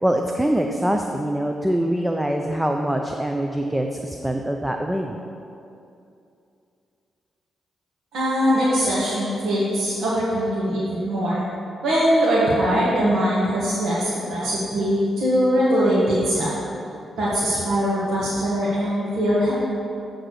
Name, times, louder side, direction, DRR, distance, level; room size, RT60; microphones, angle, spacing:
voice 1, 0.0-5.1, right 1 dB, 10° right, 3 dB, 0.5 m, -24 dB
voice 2, 8.1-11.4 11.8-16.6 17.2-19.5, equal, 80° right, -9 dB, 1.6 m, -21 dB
8.4 x 3.9 x 6.3 m, 2.6 s
cardioid pair, 80°, 0 cm